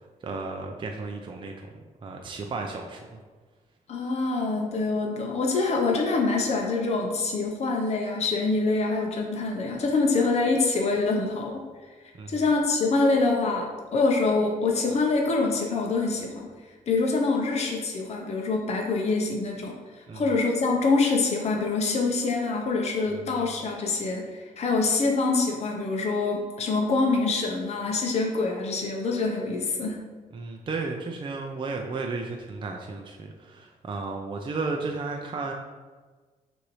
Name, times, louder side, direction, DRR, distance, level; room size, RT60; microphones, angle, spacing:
voice 1, 0.2-3.2 12.2-12.4 20.1-20.2 30.3-35.5, right 3 dB, 35° right, 2 dB, 0.5 m, -34 dB
voice 2, 3.9-11.6 12.3-16.5 16.9-19.7 20.1-30.0, left 3 dB, 45° left, 0 dB, 0.7 m, -25 dB
6.1 x 2.6 x 3.1 m, 1.4 s
cardioid pair, 80°, 15 cm